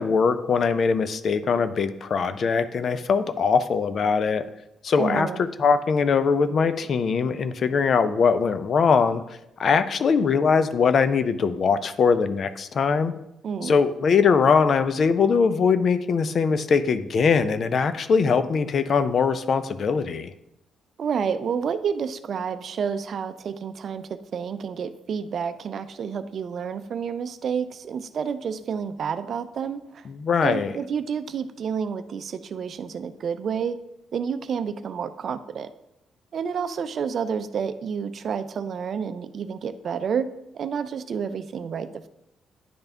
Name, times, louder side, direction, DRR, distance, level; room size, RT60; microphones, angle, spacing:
voice 1, 0.0-4.4 4.8-13.1 13.6-20.3 30.1-30.7, left 5 dB, 55° left, 12 dB, 0.5 m, -21 dB
voice 2, 5.0-5.4 13.4-13.7 21.0-30.1 30.4-33.8 34.1-35.7 36.3-40.3 40.5-42.1, right 7 dB, 60° right, 12 dB, 0.4 m, -29 dB
10.0 x 3.4 x 3.5 m, 0.85 s
supercardioid pair, 60°, 0 cm